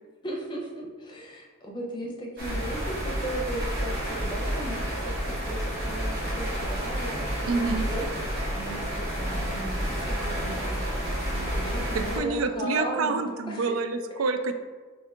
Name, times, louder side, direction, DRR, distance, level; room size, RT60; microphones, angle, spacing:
voice 1, 0.2-13.8, right 1 dB, 25° left, -1 dB, 0.7 m, -36 dB
sound 1, 2.4-12.2, equal, 55° right, 1.2 m, -30 dB
sound 2, 6.3-13.5, equal, 15° right, 1.4 m, -48 dB
voice 2, 7.5-7.8 12.2-14.5, right 4 dB, 90° right, 8 dB, 0.4 m, -27 dB
4.5 x 2.7 x 3.5 m, 1.4 s
head